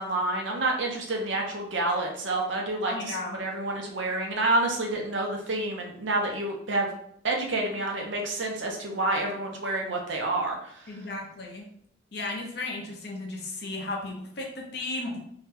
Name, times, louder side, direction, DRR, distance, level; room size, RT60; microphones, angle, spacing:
voice 1, 0.0-3.1 3.4-6.9 7.2-10.7, right 2 dB, 80° right, 1 dB, 0.7 m, -28 dB
voice 2, 2.9-3.4 10.9-11.7 12.1-15.2, left 2 dB, 60° left, -1 dB, 0.7 m, -34 dB
2.8 x 2.2 x 3.3 m, 0.66 s
head